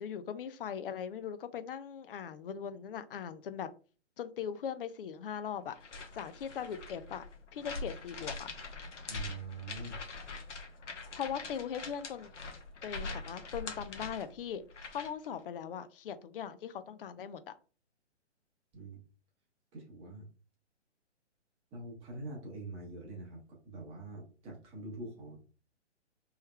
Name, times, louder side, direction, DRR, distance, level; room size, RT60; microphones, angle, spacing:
voice 1, 0.0-3.7 4.2-5.7 6.1-7.2 7.5-8.5 11.1-12.3 12.8-14.6 14.9-17.5, left 8 dB, 50° left, 12 dB, 0.4 m, -40 dB
sound 1, 5.7-15.3, left 3 dB, 80° left, 0.9 m, -43 dB
voice 2, 9.1-10.0 18.7-19.0 19.7-20.2 21.7-25.4, right 2 dB, 15° right, -1 dB, 0.9 m, -44 dB
3.2 x 3.1 x 2.2 m, 0.37 s
figure-of-eight pair, 135°, 36 cm